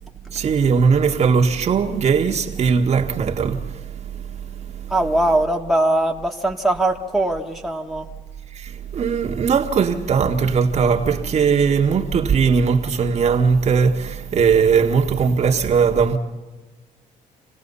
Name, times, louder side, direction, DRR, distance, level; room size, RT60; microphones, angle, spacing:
voice 1, 0.3-5.0 8.5-16.2, right 6 dB, 50° right, 1.7 m, -19 dB
voice 2, 4.9-8.1, right 1 dB, ahead, 1.7 m, -21 dB
27.5 x 17.5 x 5.6 m
cardioid pair, 110°, 15 cm